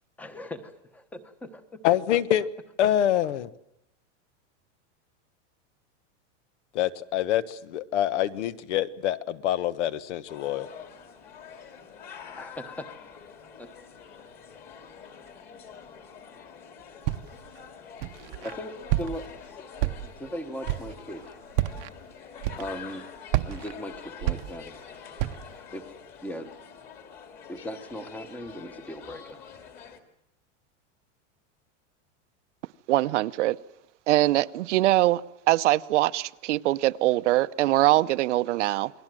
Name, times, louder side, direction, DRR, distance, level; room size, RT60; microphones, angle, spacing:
voice 1, 0.2-1.8 12.3-12.9 13.6-13.7 18.4-19.6 20.0-21.3 22.6-23.0 23.4-24.8 25.7-25.8 26.2-26.5 27.5-29.4, equal, 5° left, 10 dB, 1.0 m, -38 dB
voice 2, 1.8-2.5 2.8-3.5 6.7-10.7, left 11 dB, 70° left, 15 dB, 1.4 m, -25 dB
sound 1, 10.3-30.0, left 7 dB, 25° left, 2.3 m, -46 dB
Walk footsteps, 17.0-17.5 18.0-18.5 18.9-19.4 19.8-20.3 20.6-21.0 21.5-21.9 22.4-22.9 23.3-24.8 25.2-25.6, right 15 dB, 40° right, 0.9 m, -29 dB
voice 3, 32.9-33.6 34.1-35.2 35.5-38.9, right 16 dB, 75° right, 13 dB, 0.9 m, -22 dB
29.0 x 21.0 x 7.7 m, 0.82 s
supercardioid pair, 180°, 36 cm